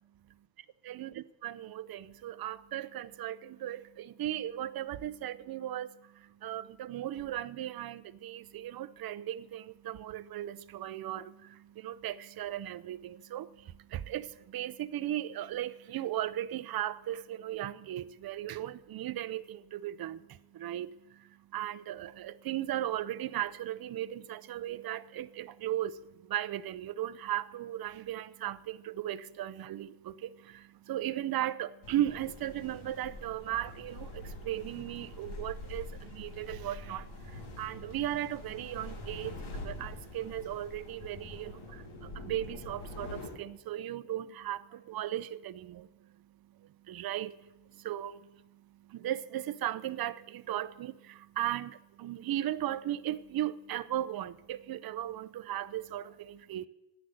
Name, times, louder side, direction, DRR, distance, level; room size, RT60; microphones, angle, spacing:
voice 1, 0.8-56.7, right 12 dB, 50° right, 0.7 m, -37 dB
Sea (under a rock), 31.8-43.3, left 2 dB, 90° left, 6.8 m, -45 dB
14.0 x 11.0 x 7.8 m
cardioid pair, 175°, 47 cm